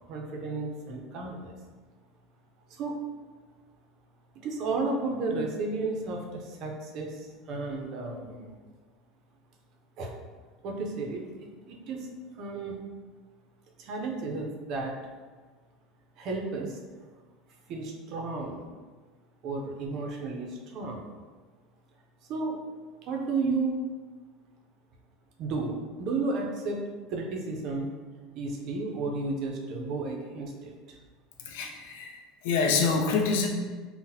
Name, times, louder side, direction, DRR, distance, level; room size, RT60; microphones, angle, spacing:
voice 1, 0.1-1.5 2.7-3.0 4.4-8.5 10.0-10.1 10.6-12.1 12.3-12.9 13.8-15.2 16.2-16.8 17.7-18.6 19.4-21.0 22.3-22.6 23.0-23.8 25.4-26.8 27.1-27.9 28.3-31.0, right 3 dB, 45° right, 1 dB, 0.5 m, -33 dB
voice 2, 31.5-32.1 32.4-33.5, left 4 dB, 80° left, 2 dB, 0.5 m, -26 dB
3.8 x 2.1 x 2.7 m, 1.4 s
cardioid pair, 160°, 0 cm